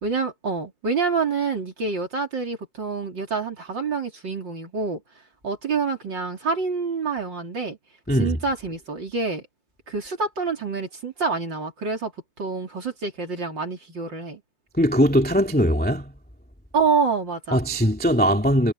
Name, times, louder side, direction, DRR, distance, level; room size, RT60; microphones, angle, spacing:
voice 1, 0.0-5.0 5.4-7.8 8.2-9.4 9.9-12.1 12.4-14.4 16.7-17.6, right 4 dB, 30° right, 3.6 m, -27 dB
voice 2, 8.1-8.4 14.8-16.1 17.5-18.7, equal, 5° left, 1.3 m, -20 dB
omnidirectional pair, 4.4 m